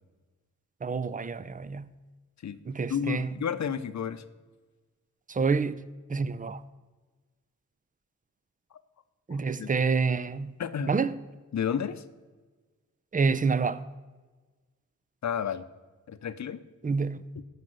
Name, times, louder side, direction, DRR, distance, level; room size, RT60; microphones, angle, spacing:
voice 1, 0.8-1.9 2.7-3.3 5.3-5.8 6.1-6.6 9.3-10.6 10.9-11.1 13.1-13.8 16.8-17.2, right 4 dB, 25° right, 0.6 m, -27 dB
voice 2, 2.9-4.2 9.3-9.7 10.6-11.0 11.5-12.0 15.2-15.6 16.1-16.6 17.4-17.5, left 8 dB, 65° left, 0.7 m, -31 dB
14.5 x 5.3 x 7.8 m
cardioid pair, 65°, 31 cm